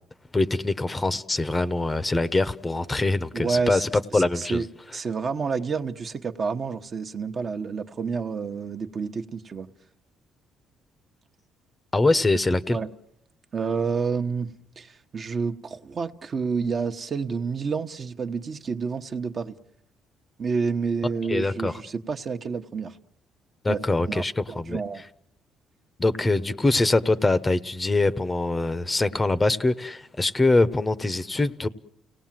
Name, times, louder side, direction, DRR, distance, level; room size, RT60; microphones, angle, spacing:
voice 1, 0.3-4.6 11.9-12.8 21.3-21.7 23.6-24.8 26.0-31.7, left 2 dB, 20° left, 0.9 m, -23 dB
voice 2, 3.3-3.9 4.1-4.7 4.9-9.7 12.7-12.9 13.5-19.6 20.4-23.0 23.7-25.0, right 5 dB, 40° right, 1.1 m, -29 dB
30.0 x 18.0 x 7.5 m
cardioid pair, 100°, 0 cm